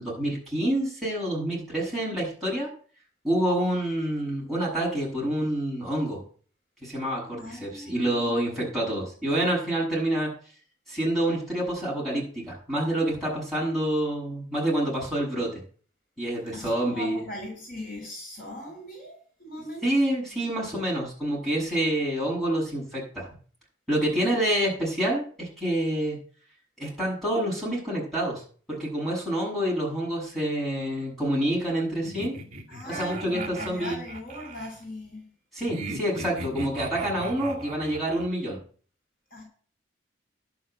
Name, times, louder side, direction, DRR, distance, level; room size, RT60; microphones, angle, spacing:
voice 1, 0.0-2.7 3.2-6.2 6.8-10.3 10.9-15.6 16.2-17.2 19.8-23.3 23.9-26.2 26.8-28.4 28.7-32.4 32.8-34.0 35.5-38.6, right 1 dB, ahead, -5 dB, 7.3 m, -27 dB
voice 2, 7.4-8.4 16.5-19.9 24.2-24.4 32.7-35.3 39.3-39.4, left 1 dB, 45° left, 0 dB, 4.3 m, -39 dB
sound 1, 32.0-34.7 35.7-38.3, right 2 dB, 35° right, 2.3 m, -37 dB
11.0 x 5.9 x 9.0 m, 0.43 s
head